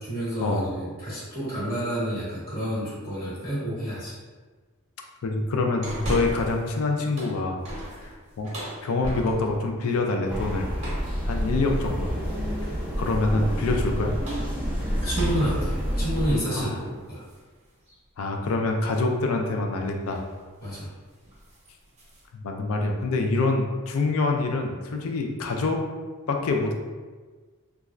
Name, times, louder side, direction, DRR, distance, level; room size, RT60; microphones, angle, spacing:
voice 1, 0.0-4.2 15.0-17.2 20.6-20.9, equal, 45° left, -9 dB, 1.3 m, -29 dB
voice 2, 5.2-7.6 8.0-8.1 8.4-8.5 8.8-10.7 11.2-12.2 12.6-12.7 13.0-14.2 16.6-16.7 18.2-20.2 22.3-25.8 26.3-26.7, left 3 dB, 70° left, 3 dB, 0.4 m, -26 dB
sound 1, 5.8-6.7 7.0-9.7 10.8-11.2 12.2-12.7 14.0-17.4 17.9-18.0 19.5-19.7 20.0-20.3 20.6-20.9 21.2-22.3, right 1 dB, 30° right, 0.8 m, -37 dB
sound 2, 10.3-16.4, equal, 5° right, 0.5 m, -28 dB
3.1 x 2.3 x 2.4 m, 1.4 s
head